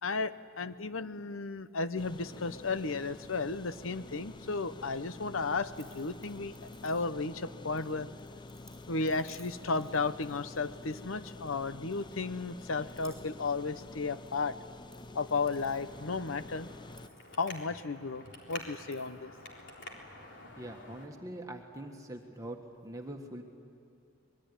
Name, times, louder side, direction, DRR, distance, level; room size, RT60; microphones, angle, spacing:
voice 1, 0.0-8.1 8.9-14.6 15.1-16.7 17.3-19.3, left 4 dB, 85° left, 13 dB, 0.9 m, -34 dB
sound 1, 2.0-17.1, left 2 dB, 20° left, 0.6 m, -49 dB
sound 2, 5.7-7.4 7.8-11.6 11.9-12.5 12.8-13.5 13.7-14.4 14.7-18.0 18.4-19.2, right 1 dB, 5° left, 5.3 m, -60 dB
Traffic noise roadway noise, 15.7-21.1, left 2 dB, 60° left, 3.8 m, -49 dB
voice 2, 20.6-23.4, right 1 dB, 15° right, 2 dB, 1.6 m, -43 dB
25.5 x 21.5 x 9.8 m, 2.4 s
head